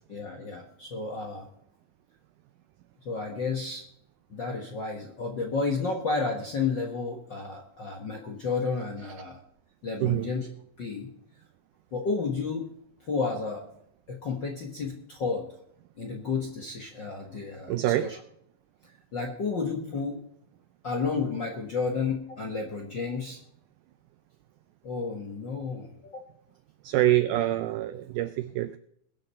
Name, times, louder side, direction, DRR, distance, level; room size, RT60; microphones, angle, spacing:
voice 1, 0.1-1.5 3.0-3.8 4.3-9.4 9.8-10.5 10.8-11.1 11.9-12.7 13.1-13.6 14.1-15.5 16.0-18.2 18.8-20.2 20.8-23.4 24.8-26.2, left 4 dB, 55° left, 1 dB, 1.3 m, -31 dB
voice 2, 17.7-18.1 26.8-28.8, right 14 dB, 85° right, 12 dB, 1.8 m, -25 dB
21.5 x 7.7 x 4.4 m, 0.71 s
omnidirectional pair, 4.2 m